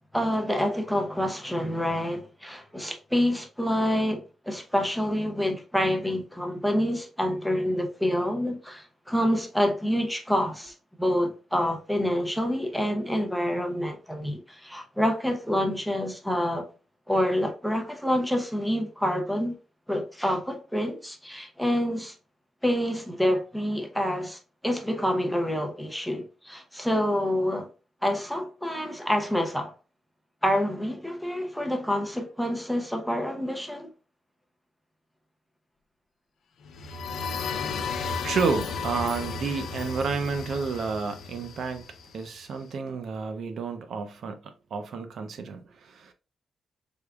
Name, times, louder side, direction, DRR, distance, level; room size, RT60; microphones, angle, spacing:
voice 1, 0.1-16.7 17.1-19.6 19.9-22.1 22.6-27.7 28.0-29.7 30.4-33.9, equal, ahead, 0.5 m, -27 dB
sound 1, 36.6-42.4, left 5 dB, 70° left, 0.4 m, -34 dB
voice 2, 38.2-41.8 42.1-46.1, right 5 dB, 60° right, 0.5 m, -30 dB
3.5 x 3.4 x 2.3 m
wide cardioid pair, 170°, 0 cm